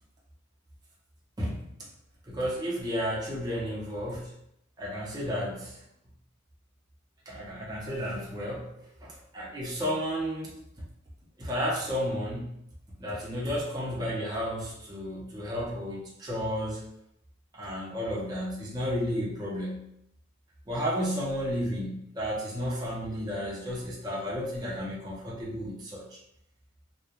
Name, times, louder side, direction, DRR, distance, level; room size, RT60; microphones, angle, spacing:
voice 1, 2.3-4.3 4.8-5.8 7.3-8.7 9.0-10.6 11.4-12.5 13.0-16.8 17.5-19.9 20.7-26.1, equal, 20° right, -5 dB, 0.5 m, -32 dB
2.8 x 2.0 x 2.3 m, 0.77 s
head